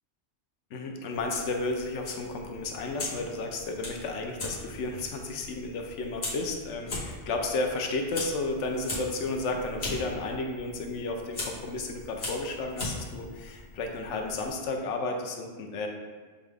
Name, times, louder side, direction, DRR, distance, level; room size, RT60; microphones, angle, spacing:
voice 1, 0.7-15.9, left 2 dB, 85° left, 3 dB, 0.9 m, -33 dB
Fire, 1.1-14.5, left 2 dB, 65° left, 1.3 m, -40 dB
6.7 x 2.4 x 3.3 m, 1.4 s
omnidirectional pair, 1.2 m